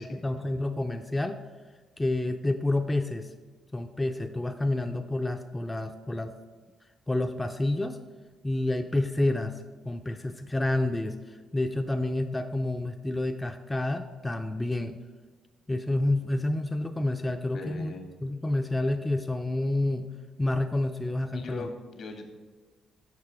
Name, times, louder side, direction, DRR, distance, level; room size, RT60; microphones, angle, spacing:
voice 1, 0.0-1.4 2.0-3.3 3.7-6.3 7.1-8.0 8.4-9.5 9.8-15.0 15.7-17.9 18.2-20.1 20.4-21.7, left 2 dB, 15° left, 5 dB, 0.4 m, -29 dB
voice 2, 17.5-18.1 21.3-22.3, left 3 dB, 65° left, 3 dB, 1.3 m, -40 dB
6.7 x 5.2 x 4.7 m, 1.4 s
cardioid pair, 90°, 0 cm